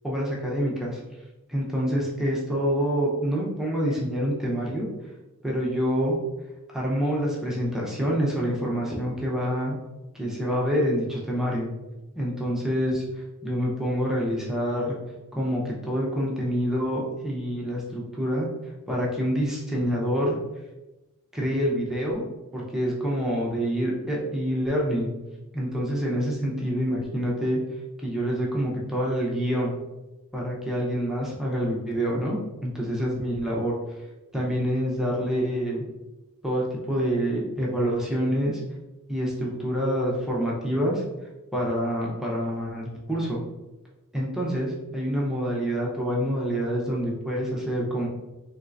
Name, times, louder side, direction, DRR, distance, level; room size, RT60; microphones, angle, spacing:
voice 1, 0.0-1.0 1.5-4.9 5.4-6.2 6.7-9.8 10.1-11.7 12.1-13.1 13.4-15.0 15.3-18.5 18.9-20.4 21.3-22.2 22.5-25.1 25.5-27.6 28.0-29.8 30.3-33.7 34.3-35.8 36.4-38.6 39.1-41.0 41.5-43.4 44.1-48.1, equal, ahead, -4 dB, 0.7 m, -27 dB
4.4 x 3.2 x 2.5 m, 1.0 s
head